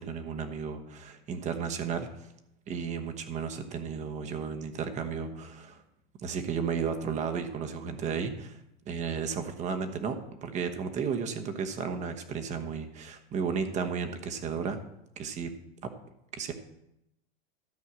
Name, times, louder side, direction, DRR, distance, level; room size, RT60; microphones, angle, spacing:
voice 1, 0.0-2.1 2.7-5.8 6.2-8.6 8.9-14.8 15.2-15.5 16.3-16.5, right 6 dB, 20° right, 7 dB, 1.1 m, -33 dB
13.0 x 5.4 x 7.4 m, 0.84 s
supercardioid pair, 145°, 32 cm